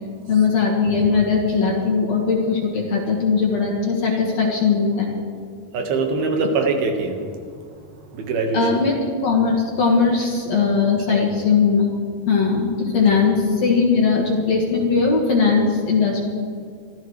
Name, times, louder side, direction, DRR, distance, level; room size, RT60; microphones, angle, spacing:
voice 1, 0.3-5.1 8.5-9.0 9.2-11.9 12.3-16.2, left 5 dB, 50° left, -1 dB, 2.4 m, -19 dB
voice 2, 5.7-7.2 8.1-8.6 11.1-11.3, right 4 dB, 70° right, 3 dB, 3.2 m, -22 dB
25.0 x 14.0 x 3.2 m, 2.2 s
omnidirectional pair, 4.6 m